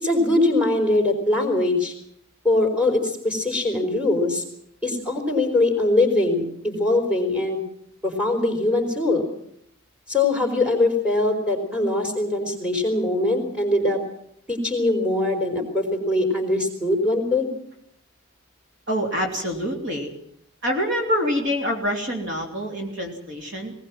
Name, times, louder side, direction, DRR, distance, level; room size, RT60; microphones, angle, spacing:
voice 1, 0.0-1.9 2.4-4.4 4.8-7.6 8.0-9.3 10.1-14.0 14.5-17.5, left 2 dB, 5° right, 2 dB, 4.8 m, -22 dB
voice 2, 18.9-20.1 20.6-23.7, equal, 60° right, 2 dB, 3.2 m, -26 dB
20.0 x 19.5 x 7.6 m, 0.71 s
head